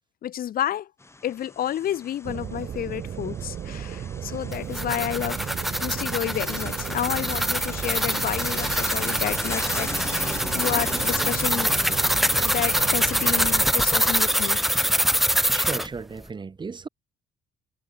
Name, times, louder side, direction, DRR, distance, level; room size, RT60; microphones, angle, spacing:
voice 1, 0.2-0.9 1.2-5.5 5.8-11.7 12.4-14.6, left 11 dB, 60° left, 4.3 m, -30 dB
sound 1, 1.0-15.8, left 3 dB, 15° left, 3.4 m, -39 dB
sound 2, 2.2-13.7, right 9 dB, 45° right, 1.6 m, -35 dB
sound 3, 4.5-15.9, equal, ahead, 0.3 m, -24 dB
voice 2, 15.5-16.9, right 5 dB, 25° right, 3.6 m, -34 dB
cardioid pair, 110°, 17 cm